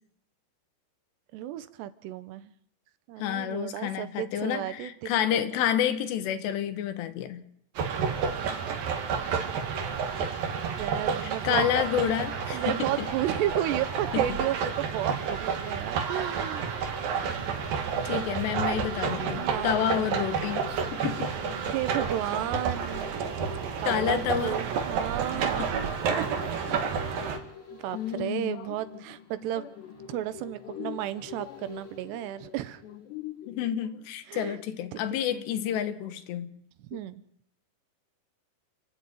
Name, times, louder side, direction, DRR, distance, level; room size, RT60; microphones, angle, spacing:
voice 1, 1.3-2.5 3.1-5.6 10.8-11.7 12.5-16.8 19.2-20.1 21.7-23.1 23.8-25.7 26.2-26.3 26.8-27.3 27.7-29.7 30.1-32.8 34.3-34.6 34.9-35.0 35.3-35.5 36.8-37.2, right 13 dB, 85° right, 14 dB, 3.1 m, -33 dB
voice 2, 3.2-7.4 11.2-13.1 14.1-14.2 16.8-16.9 18.1-20.6 20.9-21.3 23.9-24.6 25.6-25.7 26.7-26.9 27.9-28.7 29.6-29.7 30.8-31.0 31.5-31.6 32.9-36.6 36.9-37.0, left 10 dB, 85° left, 9 dB, 3.5 m, -30 dB
sound 1, 7.8-27.4, right 6 dB, 60° right, 3.6 m, -30 dB
sound 2, 17.0-33.3 33.6-33.7, left 6 dB, 45° left, 5.0 m, -47 dB
29.0 x 9.9 x 9.3 m, 0.73 s
omnidirectional pair, 4.8 m